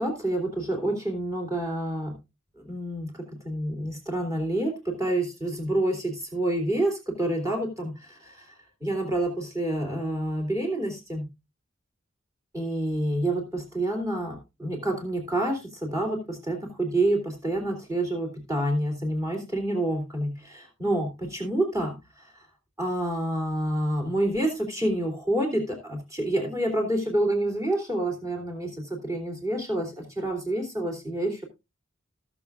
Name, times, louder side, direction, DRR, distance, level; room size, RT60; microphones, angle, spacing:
voice 1, 0.0-2.1 2.6-8.4 8.8-11.3 12.5-21.9 22.8-31.4, right 1 dB, 15° right, 2 dB, 3.0 m, -28 dB
18.5 x 6.8 x 2.4 m, 0.24 s
head